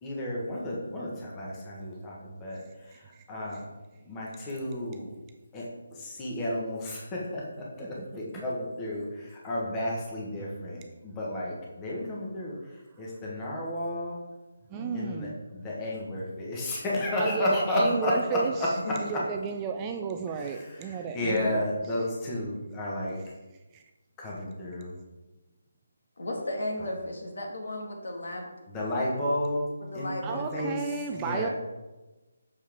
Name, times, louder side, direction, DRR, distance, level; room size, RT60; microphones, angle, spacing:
voice 1, 0.0-3.6 4.0-5.1 5.5-12.5 13.0-14.2 14.9-19.2 20.3-23.2 24.2-24.9 28.7-29.6 29.9-30.8 31.1-31.5, left 1 dB, 10° left, -4 dB, 1.1 m, -32 dB
voice 2, 2.9-3.2 7.8-8.1 8.3-8.4 14.7-15.4 17.1-18.5 19.0-21.6 23.7-23.8 30.2-31.5, right 6 dB, 15° right, 4 dB, 0.3 m, -33 dB
voice 3, 26.2-28.5 29.8-31.2, left 1 dB, 70° left, 1 dB, 1.6 m, -35 dB
6.5 x 5.5 x 3.5 m, 1.1 s
hypercardioid pair, 170°, 0 cm